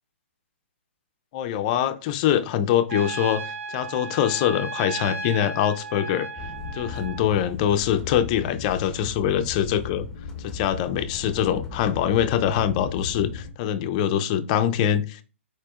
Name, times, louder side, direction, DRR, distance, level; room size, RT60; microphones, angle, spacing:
voice 1, 1.3-6.5 6.7-10.1 10.4-15.2, left 10 dB, 35° left, 0.4 m, -24 dB
Trumpet, 2.9-7.2, right 3 dB, 85° right, 0.4 m, -35 dB
sound 1, 6.4-13.5, left 5 dB, 5° left, 0.8 m, -37 dB
4.8 x 4.3 x 2.3 m
hypercardioid pair, 135°, 7 cm